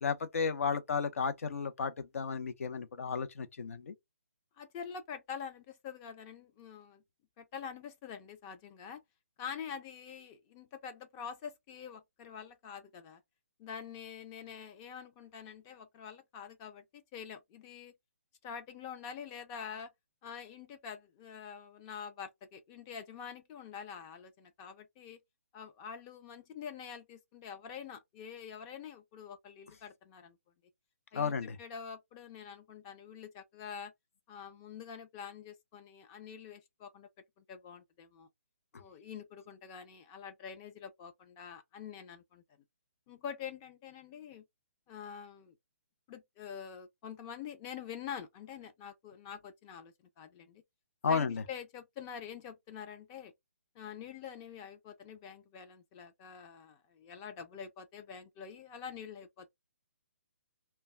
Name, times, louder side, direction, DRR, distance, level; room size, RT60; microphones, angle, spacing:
voice 1, 0.0-3.9 31.1-31.6 51.0-51.4, left 5 dB, 65° left, 0.6 m, -33 dB
voice 2, 4.6-7.0 7.4-9.0 9.4-13.2 13.6-17.9 18.4-19.9 20.2-25.2 25.5-30.4 31.1-33.9 34.3-37.1 37.4-38.3 38.8-42.4 43.1-44.4 44.9-45.6 46.1-50.6 51.1-53.3 53.7-59.5, left 7 dB, 20° left, 0.5 m, -46 dB
2.2 x 2.1 x 3.2 m
hypercardioid pair, 155°, 8 cm